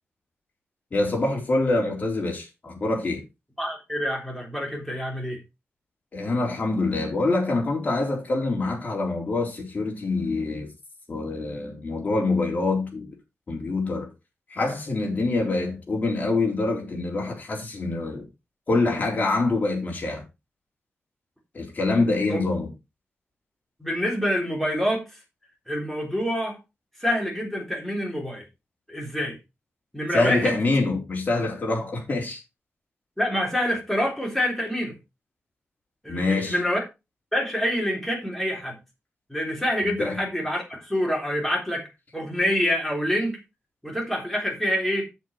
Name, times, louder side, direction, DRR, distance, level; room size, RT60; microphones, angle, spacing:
voice 1, 0.9-3.2 6.1-10.7 11.1-13.1 13.5-14.1 14.5-18.3 18.7-20.2 21.5-22.7 30.1-32.4 36.1-36.6 39.8-40.2, left 2 dB, 40° left, 3.8 m, -25 dB
voice 2, 3.6-5.4 22.3-22.4 23.8-25.0 25.7-26.6 27.0-28.4 28.9-29.4 29.9-30.6 33.2-35.0 36.0-36.8 37.3-38.8 39.3-41.9 42.1-43.4 43.8-45.1, equal, 5° left, 3.6 m, -26 dB
8.2 x 7.0 x 4.5 m
wide cardioid pair, 150°, 4 cm